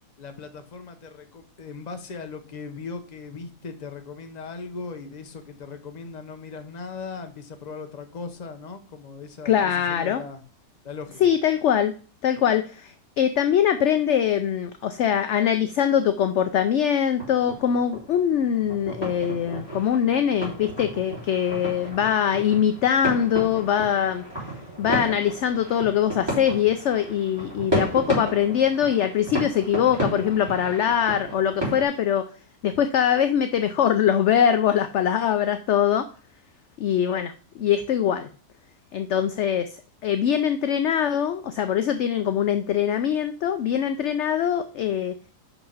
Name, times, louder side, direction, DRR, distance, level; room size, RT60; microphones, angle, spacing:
voice 1, 0.2-10.4 10.8-11.3, left 4 dB, 35° left, 7 dB, 0.9 m, -38 dB
voice 2, 9.4-10.2 11.2-11.9 12.2-24.2 24.8-32.3 32.6-36.1 36.8-38.3 38.9-45.1, left 9 dB, 65° left, 9 dB, 0.7 m, -22 dB
sound 1, 17.2-31.8, right 1 dB, 15° right, 4.1 m, -33 dB
5.7 x 5.7 x 5.5 m, 0.39 s
omnidirectional pair, 1.6 m